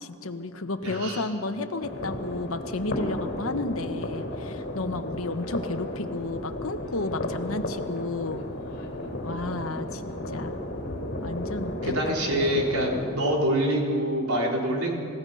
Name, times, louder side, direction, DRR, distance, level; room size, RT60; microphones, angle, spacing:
voice 1, 0.0-8.4 9.2-10.6 11.2-12.1 12.4-12.5, left 2 dB, 75° left, 8 dB, 1.2 m, -32 dB
voice 2, 0.8-1.3 11.8-14.9, right 1 dB, 90° right, -1 dB, 4.2 m, -25 dB
sound 1, 1.8-13.1, left 1 dB, 50° left, 3.9 m, -34 dB
28.5 x 16.0 x 5.7 m, 2.4 s
head